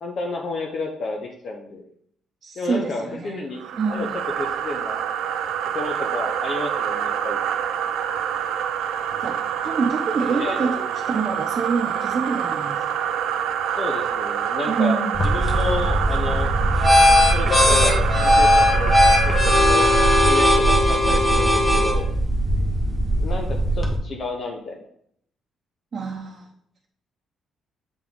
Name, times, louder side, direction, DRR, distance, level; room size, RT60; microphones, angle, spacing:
voice 1, 0.0-1.8 2.6-3.6 3.9-5.0 5.7-7.4 10.3-10.8 13.8-16.5 17.3-19.9 20.2-22.1 23.2-24.8, left 3 dB, 55° left, 1 dB, 0.8 m, -31 dB
voice 2, 2.4-3.4 3.8-4.1 9.2-12.8 14.7-15.2 25.9-26.5, right 5 dB, 40° right, -1 dB, 0.8 m, -26 dB
sound 1, 3.6-20.6, right 9 dB, 85° right, 0.4 m, -27 dB
sound 2, 15.1-24.0, equal, 20° left, 1.2 m, -18 dB
Wind instrument woodwind instrument, 17.4-22.1, left 1 dB, 85° left, 2.0 m, -31 dB
7.1 x 3.6 x 3.7 m, 0.68 s
cardioid pair, 90°, 0 cm